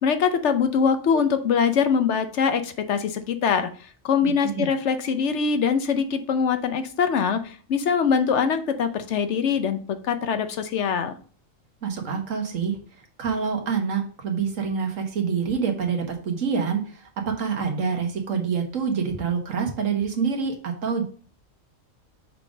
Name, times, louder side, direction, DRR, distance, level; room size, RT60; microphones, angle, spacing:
voice 1, 0.0-3.7 4.0-11.1, left 6 dB, 65° left, 9 dB, 1.0 m, -23 dB
voice 2, 4.2-4.7 11.8-12.8 13.2-21.0, right 6 dB, 80° right, 3 dB, 1.6 m, -26 dB
6.6 x 3.7 x 5.0 m, 0.42 s
omnidirectional pair, 1.3 m